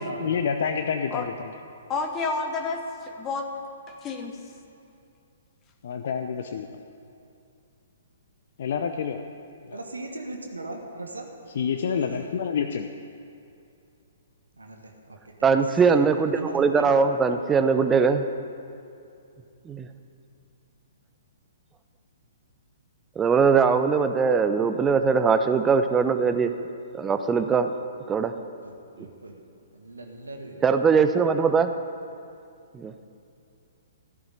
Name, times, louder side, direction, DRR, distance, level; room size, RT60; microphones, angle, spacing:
voice 1, 0.2-1.5 5.8-6.7 8.6-9.2 9.7-9.8 11.5-13.0, left 6 dB, 50° left, 6 dB, 0.6 m, -28 dB
voice 2, 1.9-3.4 3.9-4.4, left 4 dB, 20° left, 4 dB, 1.1 m, -30 dB
voice 3, 9.7-11.3 12.0-12.3 14.6-15.8 16.3-17.0 28.6-29.4 29.7-30.6, right 2 dB, 75° right, 3 dB, 1.4 m, -39 dB
voice 4, 15.4-18.2 19.7-19.9 23.2-26.5 26.9-27.7 28.1-28.3 30.6-31.7 32.7-32.9, right 5 dB, 15° right, 8 dB, 0.7 m, -21 dB
13.5 x 7.2 x 9.7 m, 2.6 s
figure-of-eight pair, 120°, 0 cm